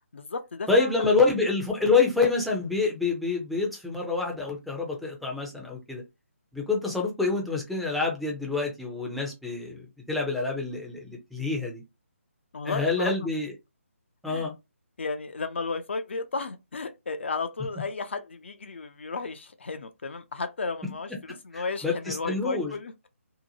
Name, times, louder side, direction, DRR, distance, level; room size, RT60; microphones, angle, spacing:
voice 1, 0.1-1.1 12.5-13.3 14.3-14.5 15.0-23.1, left 4 dB, 55° left, 0.4 m, -34 dB
voice 2, 0.7-6.0 6.5-11.8 12.6-13.5 14.2-14.5 21.5-22.7, left 4 dB, ahead, 0.5 m, -27 dB
2.7 x 2.1 x 2.7 m
figure-of-eight pair, 145°, 8 cm